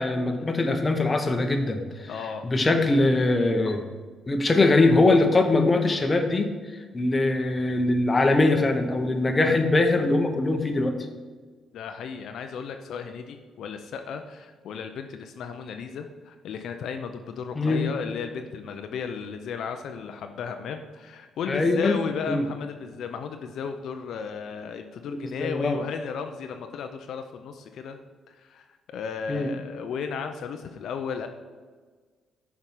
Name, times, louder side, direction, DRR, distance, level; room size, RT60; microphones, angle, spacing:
voice 1, 0.0-2.1 2.4-3.9 4.3-11.0 17.6-17.9 21.5-22.0 22.3-22.4 25.1-25.8 29.3-29.5, left 2 dB, 25° left, 5 dB, 0.9 m, -22 dB
voice 2, 2.1-2.4 11.7-28.0 28.3-31.3, left 6 dB, 70° left, 6 dB, 0.5 m, -34 dB
6.6 x 4.7 x 5.6 m, 1.4 s
cardioid pair, 90°, 0 cm